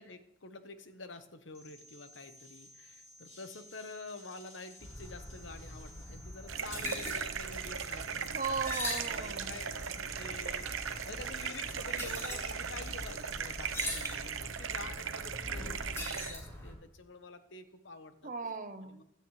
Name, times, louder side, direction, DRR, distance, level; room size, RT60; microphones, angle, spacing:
voice 1, 0.0-8.4 8.9-18.3 18.9-19.0, left 3 dB, 65° left, 1.1 m, -48 dB
sound 1, 1.6-14.4, left 1 dB, 40° left, 3.8 m, -55 dB
sound 2, 4.8-16.7, left 1 dB, 15° left, 3.8 m, -42 dB
sound 3, 6.5-16.3, right 7 dB, 85° right, 0.8 m, -38 dB
voice 2, 8.3-9.5 18.2-19.0, right 4 dB, 45° right, 0.9 m, -37 dB
16.0 x 12.5 x 3.2 m
head